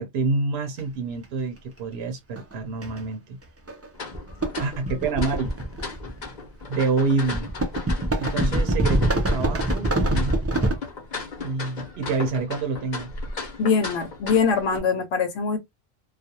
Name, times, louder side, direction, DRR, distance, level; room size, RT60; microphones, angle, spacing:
voice 1, 0.0-3.4 4.6-5.5 6.7-7.5 8.2-10.4 11.4-13.1, right 3 dB, 80° right, 0.9 m, -27 dB
sound 1, 0.8-0.9 2.4-2.5 2.8-3.0 3.7-6.2 7.3-10.8, right 1 dB, 25° right, 0.3 m, -24 dB
sound 2, 3.9-14.8, left 4 dB, 45° left, 0.8 m, -36 dB
voice 2, 13.6-15.6, left 5 dB, 85° left, 0.9 m, -22 dB
2.4 x 2.2 x 2.7 m
omnidirectional pair, 1.1 m